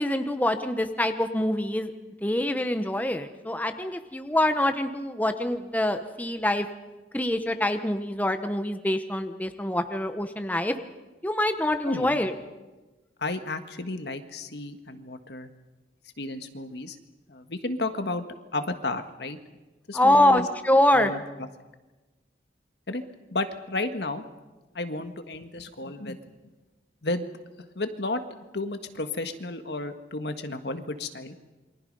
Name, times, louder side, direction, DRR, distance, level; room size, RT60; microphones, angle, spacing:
voice 1, 0.0-1.9 2.2-6.7 7.1-10.7 11.2-12.3 19.9-21.1, left 1 dB, 10° left, 8 dB, 0.9 m, -25 dB
voice 2, 11.8-12.2 13.2-15.5 16.2-17.0 17.3-18.2 18.5-19.4 19.9-20.5 20.9-21.2 22.9-23.0 23.3-24.2 24.7-26.2 27.0-27.3 27.7-28.2 28.5-31.3, left 2 dB, 75° left, 8 dB, 1.6 m, -32 dB
28.0 x 23.5 x 5.4 m, 1.2 s
head